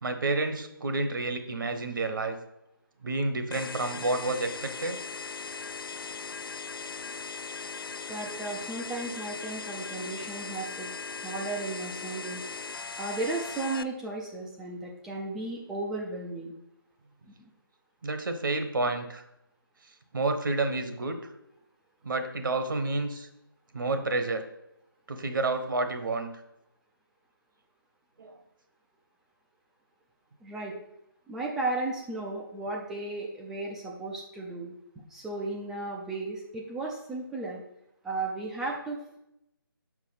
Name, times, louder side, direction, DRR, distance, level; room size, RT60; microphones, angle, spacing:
voice 1, 0.0-2.4 3.0-5.0 18.0-19.2 20.1-21.3 22.0-23.3 23.7-24.4 25.1-26.3 28.2-28.4, right 2 dB, 60° right, 7 dB, 1.0 m, -30 dB
sound 1, 3.5-13.8, left 5 dB, 75° left, 0.4 m, -39 dB
voice 2, 8.1-12.5 13.0-16.5 17.2-17.5 30.4-30.8 31.3-34.7 35.1-37.6 38.0-39.2, right 2 dB, 5° right, -2 dB, 0.3 m, -35 dB
5.8 x 4.9 x 5.6 m, 0.83 s
figure-of-eight pair, 150°, 12 cm